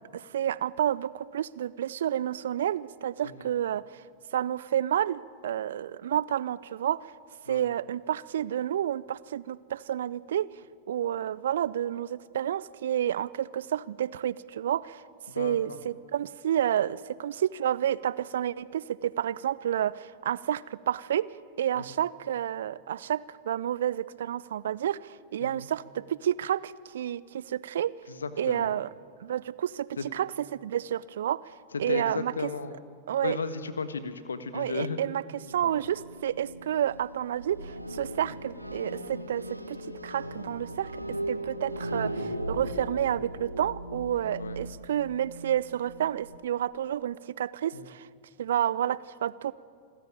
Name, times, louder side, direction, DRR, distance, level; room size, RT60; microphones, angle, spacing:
voice 1, 0.1-4.0 4.3-7.1 7.5-10.5 10.9-15.0 15.4-21.3 21.6-27.9 28.4-28.9 29.2-31.5 31.8-32.5 33.1-33.4 34.5-48.1 48.4-49.5, right 10 dB, 60° right, 21 dB, 0.5 m, -30 dB
voice 2, 15.3-15.8 21.7-21.8 25.4-25.7 28.1-28.7 30.0-30.1 31.7-32.8 33.2-35.0 35.6-35.8 41.0-41.1 44.4-44.6 47.7-47.9, left 4 dB, 70° left, 11 dB, 1.4 m, -35 dB
sound 1, 35.4-46.4, right 1 dB, 90° right, 1.4 m, -38 dB
26.5 x 15.0 x 9.2 m, 2.2 s
figure-of-eight pair, 90°, 0 cm